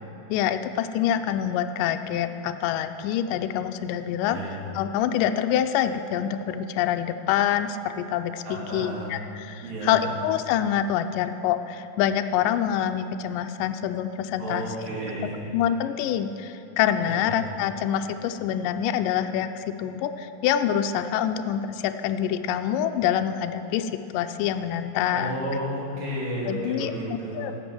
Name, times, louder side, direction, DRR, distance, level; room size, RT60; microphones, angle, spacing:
voice 1, 0.3-14.6 15.5-25.4 26.5-26.9 27.3-27.5, left 10 dB, 80° left, 7 dB, 2.0 m, -26 dB
voice 2, 4.3-4.6 8.4-9.1 9.6-10.1 14.4-15.5 17.0-17.3 25.1-27.5, equal, 70° right, -6 dB, 4.3 m, -32 dB
16.5 x 7.9 x 6.1 m, 2.8 s
omnidirectional pair, 4.0 m